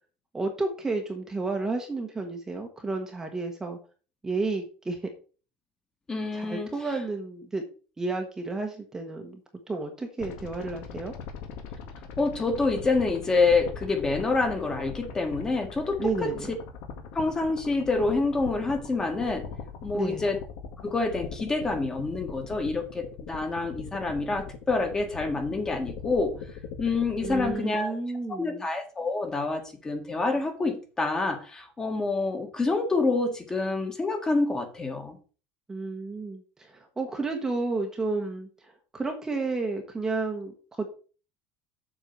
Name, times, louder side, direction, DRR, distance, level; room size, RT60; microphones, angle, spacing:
voice 1, 0.3-3.8 4.2-5.0 6.3-7.6 8.0-9.4 9.7-11.1 16.0-16.5 19.9-20.3 27.2-28.6 35.7-38.5 38.9-40.9, right 3 dB, 10° right, 3 dB, 1.1 m, -31 dB
voice 2, 6.1-6.7 12.2-16.3 17.1-19.4 19.8-20.4 20.8-26.3 26.8-28.0 28.4-35.2, left 3 dB, 15° left, 5 dB, 1.6 m, -27 dB
sound 1, 10.2-27.5, left 6 dB, 70° left, 1.8 m, -40 dB
7.6 x 4.7 x 6.8 m, 0.37 s
cardioid pair, 155°, 4 cm